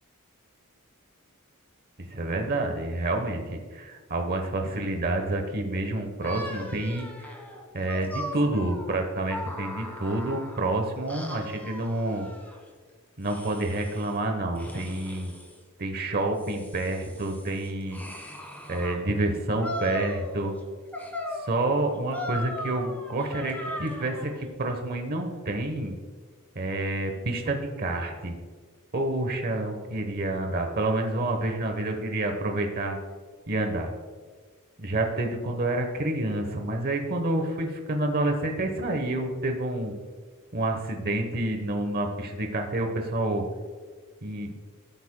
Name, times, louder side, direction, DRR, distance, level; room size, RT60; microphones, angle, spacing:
voice 1, 2.0-7.3 7.7-12.3 13.2-15.3 15.8-18.0 18.7-20.5 21.4-25.9 26.5-28.3 28.9-33.0 33.5-33.9 34.8-39.9 40.5-43.4 44.2-44.5, right 2 dB, 45° right, 4 dB, 1.0 m, -28 dB
sound 1, 6.2-10.7 11.1-12.6 13.2-14.2 14.6-15.6 16.1-19.0 19.6-20.6 20.9-24.4, left 1 dB, 10° left, 1.5 m, -38 dB
16.0 x 8.5 x 2.2 m, 1.5 s
head